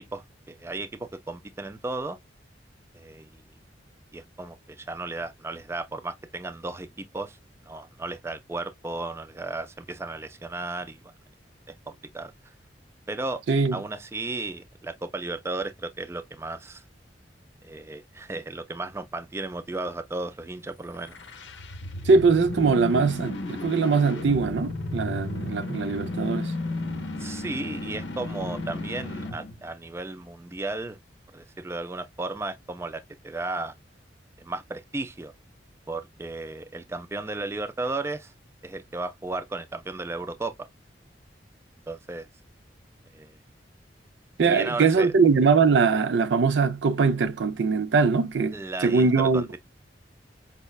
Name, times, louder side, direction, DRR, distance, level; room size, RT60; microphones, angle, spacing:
voice 1, 0.0-2.2 2.9-3.4 4.1-7.4 7.7-11.1 11.9-12.3 13.1-13.4 13.7-16.8 17.6-21.2 27.2-31.0 31.3-33.7 34.4-35.3 35.9-38.3 38.6-40.5 41.9-42.3 43.1-43.4 44.4-45.1 48.5-49.6, right 2 dB, 15° right, 0.3 m, -34 dB
sound 1, 20.9-29.6, left 2 dB, 85° left, 0.6 m, -34 dB
voice 2, 22.1-26.5 44.4-48.6 48.8-49.4, right 4 dB, 80° right, 0.5 m, -21 dB
5.3 x 2.1 x 2.3 m
head